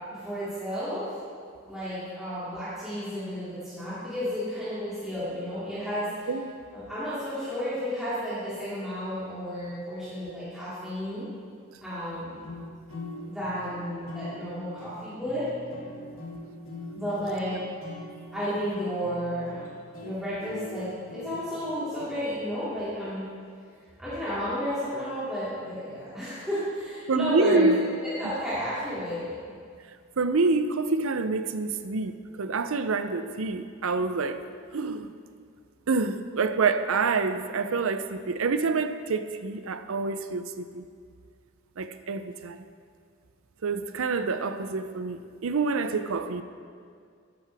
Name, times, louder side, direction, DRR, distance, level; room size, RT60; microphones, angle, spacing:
voice 1, 0.1-1.1 1.6-6.3 6.7-11.3 11.8-12.4 13.2-15.4 16.9-17.6 18.3-19.6 20.0-23.3 24.0-27.7 28.0-29.3, equal, 5° right, -13 dB, 2.5 m, -32 dB
sound 1, 12.4-22.3, left 1 dB, 70° left, 2.4 m, -43 dB
voice 2, 27.1-27.8 28.2-28.3 30.2-34.4 34.7-35.1 35.9-40.9 41.8-42.6 43.6-46.4, right 4 dB, 70° right, 10 dB, 0.6 m, -27 dB
13.5 x 10.5 x 3.5 m, 2.2 s
head